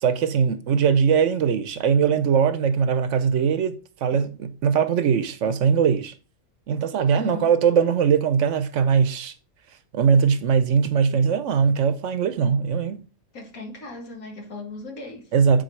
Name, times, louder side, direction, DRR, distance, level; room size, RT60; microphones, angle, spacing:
voice 1, 0.0-3.8 4.0-6.1 6.7-9.3 9.9-13.0 15.3-15.6, right 6 dB, 70° right, 0.9 m, -20 dB
voice 2, 7.1-7.5 13.3-15.4, left 3 dB, 80° left, 2.0 m, -38 dB
8.7 x 4.3 x 3.2 m
omnidirectional pair, 1.4 m